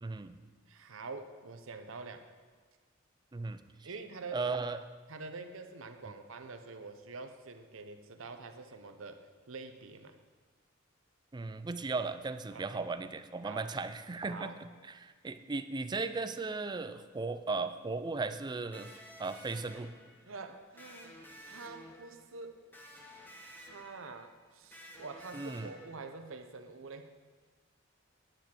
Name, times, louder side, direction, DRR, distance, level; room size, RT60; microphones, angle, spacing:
voice 1, 0.0-0.4 3.3-3.6 4.3-4.8 11.3-18.9 19.2-19.9 25.3-25.7, right 3 dB, 20° right, 11 dB, 0.4 m, -36 dB
voice 2, 0.7-2.3 3.8-4.4 5.1-10.2 12.5-12.8 13.4-13.7 14.3-14.6 20.3-21.2 21.5-22.6 23.5-27.1, right 4 dB, 80° right, 7 dB, 0.8 m, -46 dB
Electric guitar, 18.7-26.4, equal, 10° left, 1.1 m, -53 dB
9.8 x 9.0 x 4.5 m, 1.5 s
head